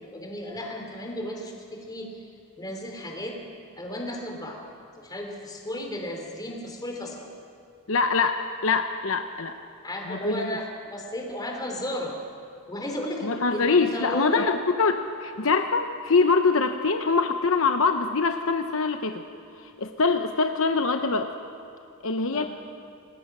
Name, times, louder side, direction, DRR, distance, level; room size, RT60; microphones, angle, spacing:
voice 1, 0.0-2.1 2.6-3.4 3.8-4.6 5.0-7.2 9.8-12.1 12.7-14.5 22.3-22.5, left 1 dB, 20° left, 1 dB, 3.5 m, -34 dB
voice 2, 7.9-9.6 10.1-10.6 13.2-14.9 15.2-19.2 19.6-21.3 22.0-22.4, left 4 dB, 65° left, 6 dB, 0.9 m, -24 dB
27.0 x 19.5 x 6.1 m, 2.6 s
head